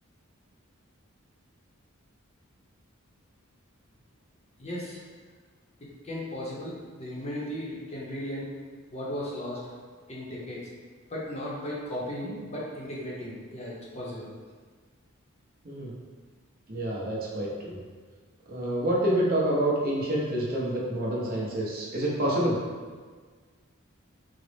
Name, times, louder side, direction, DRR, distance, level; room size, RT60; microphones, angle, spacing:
voice 1, 4.6-5.0 6.0-8.5 8.9-9.6 10.1-10.6 11.1-14.3, left 1 dB, 30° left, -5 dB, 0.6 m, -36 dB
voice 2, 16.7-17.8 18.5-22.6, right 1 dB, 45° right, -4 dB, 0.6 m, -27 dB
3.9 x 2.0 x 3.2 m, 1.5 s
head